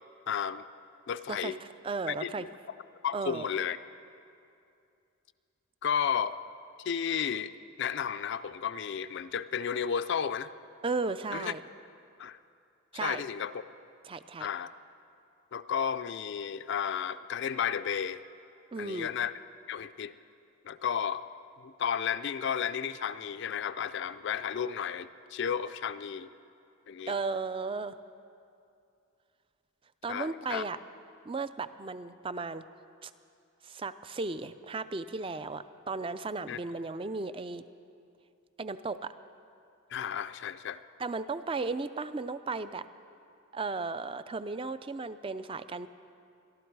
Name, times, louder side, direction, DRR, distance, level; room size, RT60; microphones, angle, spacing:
voice 1, 0.3-0.6 1.1-1.6 2.1-2.5 3.0-3.8 5.8-6.3 6.8-7.5 7.8-10.5 11.3-11.5 12.2-12.4 13.0-13.5 14.4-14.7 15.5-18.2 18.8-19.3 19.7-20.1 20.6-21.2 21.6-26.3 26.9-27.1 30.1-30.6 36.5-36.6 39.9-40.8, left 7 dB, 60° left, 12 dB, 0.4 m, -33 dB
voice 2, 1.8-2.5 3.1-3.5 10.8-11.6 12.9-13.2 14.0-14.5 18.7-19.1 27.1-28.0 30.0-30.8 31.3-32.6 33.0-33.1 33.6-37.6 38.6-39.1 41.0-42.9 43.5-45.9, right 3 dB, 25° right, 13 dB, 0.4 m, -35 dB
24.0 x 12.5 x 4.7 m, 2.5 s
head